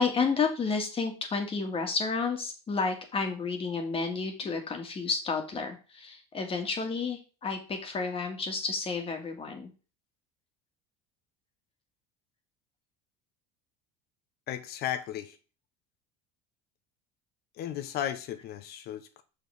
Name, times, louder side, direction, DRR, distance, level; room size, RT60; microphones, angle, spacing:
voice 1, 0.0-9.7, left 4 dB, 30° left, 2.1 m, -31 dB
voice 2, 14.5-15.4 17.5-19.2, left 11 dB, 55° left, 1.1 m, -35 dB
6.7 x 6.3 x 3.6 m
supercardioid pair, 115°, 20 cm